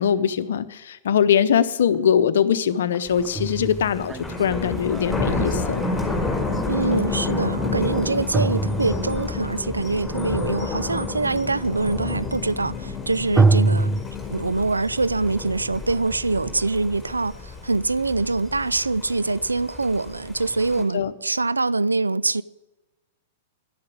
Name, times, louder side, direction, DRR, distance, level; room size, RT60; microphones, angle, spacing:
voice 1, 0.0-5.9 20.9-21.1, left 8 dB, 65° left, 0.8 m, -22 dB
sound 1, 1.9-2.0 2.9-6.6 8.3-9.5 13.3-14.0, right 3 dB, 15° right, 0.5 m, -23 dB
Thunder, 3.1-20.8, left 2 dB, 5° left, 4.1 m, -31 dB
sound 2, 4.8-14.9, left 11 dB, 30° left, 2.0 m, -34 dB
voice 2, 6.7-13.9 14.3-22.4, right 3 dB, 85° right, 0.4 m, -24 dB
11.5 x 10.5 x 8.6 m
figure-of-eight pair, 105°, 0 cm